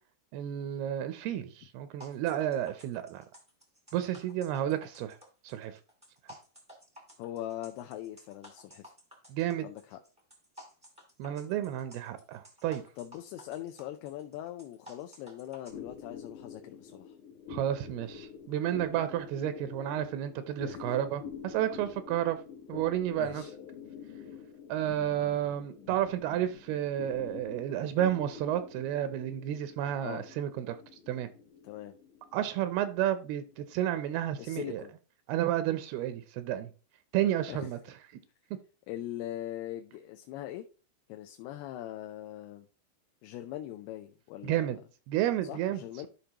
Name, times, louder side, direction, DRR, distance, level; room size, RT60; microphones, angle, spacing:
voice 1, 0.3-3.2 3.9-5.2 5.4-5.8 9.3-9.7 11.2-12.8 17.5-22.4 22.7-23.4 24.7-30.8 31.1-31.3 32.3-34.8 35.3-36.7 37.1-37.8 44.4-44.8 45.1-46.1, right 12 dB, 85° right, 2.6 m, -31 dB
sound 1, 2.0-15.7, equal, 5° right, 0.6 m, -53 dB
voice 2, 7.2-8.8 9.6-10.0 13.0-17.1 20.6-21.0 23.1-23.5 30.0-30.3 31.6-31.9 34.4-34.9 37.5-37.7 38.9-40.6 41.1-42.7 43.2-44.8 45.4-46.1, left 13 dB, 90° left, 2.6 m, -41 dB
sound 2, 15.7-34.5, left 7 dB, 70° left, 2.1 m, -47 dB
12.5 x 5.1 x 2.9 m
omnidirectional pair, 4.5 m